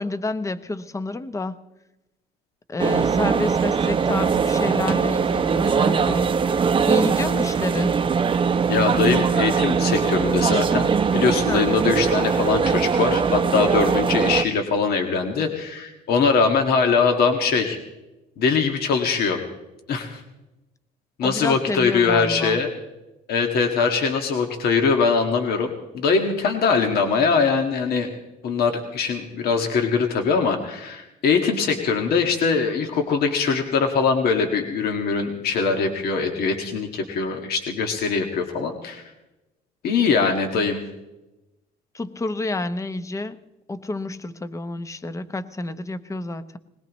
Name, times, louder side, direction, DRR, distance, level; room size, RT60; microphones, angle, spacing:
voice 1, 0.0-1.6 2.7-6.3 6.8-8.0 11.5-11.7 21.2-22.6 41.9-43.4 43.7-46.6, left 2 dB, 20° left, 13 dB, 0.8 m, -29 dB
sound 1, 2.8-14.4, right 6 dB, 30° right, 0.7 m, -21 dB
voice 2, 8.7-17.8 18.4-19.4 19.9-20.2 21.2-22.7 23.3-28.1 28.4-39.0 39.8-40.8, left 5 dB, 65° left, 4 dB, 1.9 m, -22 dB
21.0 x 20.0 x 3.1 m, 1.0 s
cardioid pair, 110°, 17 cm